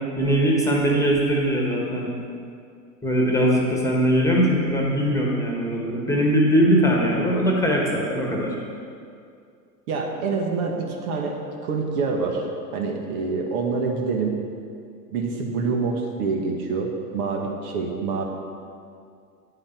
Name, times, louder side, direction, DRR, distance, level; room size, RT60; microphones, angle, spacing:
voice 1, 0.2-2.1 3.0-8.5, equal, 5° left, -2 dB, 1.5 m, -21 dB
voice 2, 9.9-11.4 11.6-12.5 12.7-14.4 15.1-18.2, right 4 dB, 60° right, 1 dB, 1.7 m, -26 dB
9.5 x 8.8 x 4.5 m, 2.3 s
hypercardioid pair, 110°, 50 cm